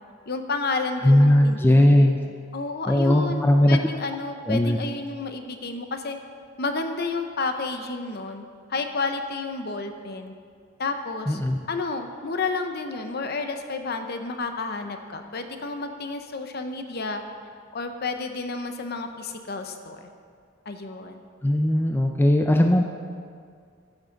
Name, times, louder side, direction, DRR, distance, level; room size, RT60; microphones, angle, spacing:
voice 1, 0.3-2.1 2.5-6.2 6.6-8.4 8.7-10.3 10.8-11.4 11.7-17.2 17.7-20.0 20.7-21.2, left 3 dB, 55° left, 6 dB, 0.8 m, -31 dB
voice 2, 1.0-2.2 2.9-3.8 4.5-4.8 11.3-11.6 21.4-22.8, left 1 dB, 10° left, 3 dB, 0.5 m, -18 dB
13.5 x 6.3 x 5.2 m, 2.1 s
head